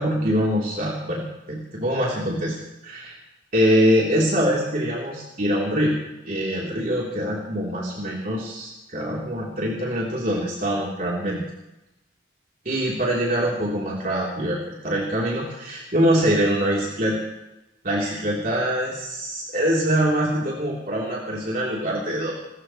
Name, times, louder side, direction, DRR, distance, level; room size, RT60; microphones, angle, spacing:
voice 1, 0.0-2.6 2.8-3.2 3.5-6.0 6.3-11.4 12.7-17.2 17.8-22.3, equal, 45° right, -4 dB, 3.5 m, -24 dB
29.5 x 14.5 x 3.2 m, 0.94 s
head